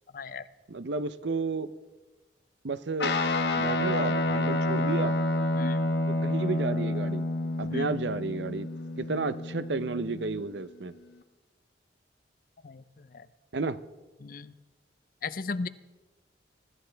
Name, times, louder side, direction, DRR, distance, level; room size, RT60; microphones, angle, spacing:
voice 1, 0.1-0.5 5.5-5.9 7.7-7.9 12.6-12.8 13.1-13.3 14.2-14.5 15.2-15.7, left 4 dB, 50° left, 15 dB, 0.6 m, -35 dB
voice 2, 0.7-1.7 2.6-3.2 3.6-5.2 6.1-7.3 7.6-8.7 9.0-10.9 13.5-13.8, right 3 dB, 75° right, 14 dB, 0.7 m, -32 dB
Guitar, 3.0-10.6, left 2 dB, 65° left, 1.1 m, -29 dB
24.5 x 13.5 x 3.4 m, 1.2 s
head